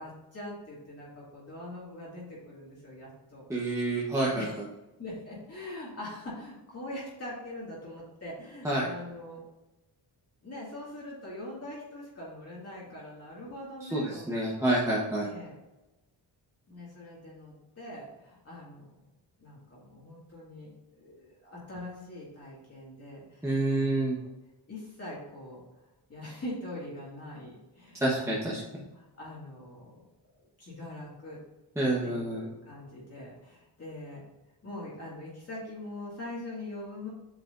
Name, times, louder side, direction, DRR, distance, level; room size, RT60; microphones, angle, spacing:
voice 1, 0.0-3.5 4.3-4.6 5.0-9.4 10.4-14.4 15.2-15.6 16.7-19.0 19.4-24.3 24.7-25.6 26.1-28.6 28.9-30.0 30.3-31.4 32.0-34.2 34.6-37.1, left 1 dB, 35° left, -6 dB, 2.1 m, -43 dB
voice 2, 3.5-4.4 8.6-8.8 13.8-15.3 23.4-24.2 28.0-28.6 31.8-32.4, right 2 dB, 5° right, -6 dB, 1.0 m, -28 dB
7.6 x 4.8 x 2.6 m, 1.0 s
wide cardioid pair, 130°, 43 cm